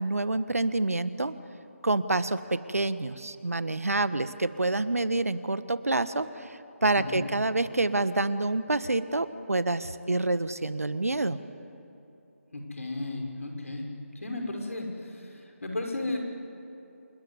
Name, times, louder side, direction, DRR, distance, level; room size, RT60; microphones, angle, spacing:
voice 1, 0.0-1.3 1.8-11.4, right 2 dB, 75° right, 13 dB, 1.4 m, -27 dB
voice 2, 12.5-13.9 14.2-16.2, left 2 dB, 65° left, 2 dB, 5.5 m, -34 dB
29.0 x 20.5 x 9.7 m, 2.8 s
figure-of-eight pair, 160°, 8 cm